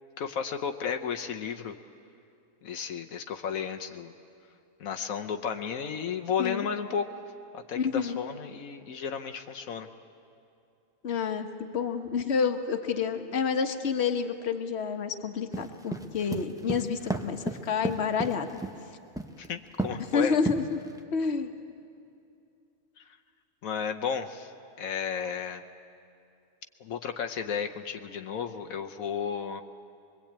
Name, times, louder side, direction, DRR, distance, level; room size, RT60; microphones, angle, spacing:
voice 1, 0.2-1.8 2.6-4.1 4.8-7.1 7.5-9.9 19.4-20.4 23.0-23.1 23.6-24.5 24.8-25.6 26.8-29.6, left 7 dB, 85° left, 5 dB, 1.3 m, -33 dB
voice 2, 7.8-8.2 11.0-18.5 20.1-20.8 21.1-21.5, left 6 dB, 55° left, 6 dB, 1.4 m, -29 dB
sound 1, 15.5-18.8 19.2-19.5 19.8-20.1 20.5-21.0, right 2 dB, 5° right, 0.8 m, -32 dB
23.5 x 22.0 x 8.7 m, 2.6 s
omnidirectional pair, 1.4 m